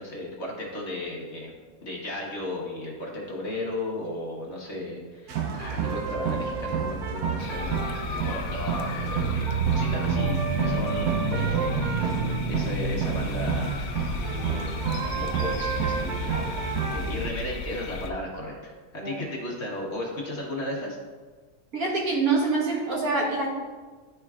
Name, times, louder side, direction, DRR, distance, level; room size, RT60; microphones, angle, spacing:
voice 1, 0.0-1.5 1.8-11.7 12.0-13.8 14.1-14.8 15.1-16.4 16.9-21.0, left 1 dB, 45° left, -3 dB, 1.4 m, -35 dB
sound 1, 5.3-17.3, right 5 dB, 85° right, 1.2 m, -28 dB
sound 2, 7.4-18.1, left 3 dB, 65° left, 0.8 m, -36 dB
voice 2, 21.7-23.5, right 3 dB, 65° right, -4 dB, 1.8 m, -25 dB
11.5 x 4.5 x 2.4 m, 1.4 s
omnidirectional pair, 1.7 m